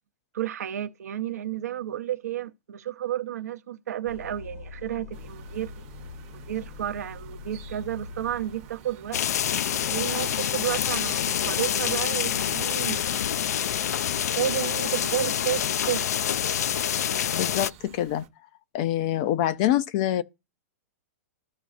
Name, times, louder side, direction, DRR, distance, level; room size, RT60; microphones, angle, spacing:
voice 1, 0.3-5.9 6.3-9.2 9.9-13.3 14.1-16.1, right 11 dB, 85° right, 0.8 m, -32 dB
sound 1, 4.1-9.0, left 5 dB, 65° left, 0.8 m, -43 dB
sound 2, 5.1-18.3, right 9 dB, 25° right, 0.7 m, -50 dB
sound 3, 9.1-17.7, left 9 dB, 90° left, 0.4 m, -27 dB
voice 2, 17.3-18.3 18.7-20.2, left 12 dB, 25° left, 0.3 m, -25 dB
14.0 x 5.1 x 2.4 m
supercardioid pair, 180°, 8 cm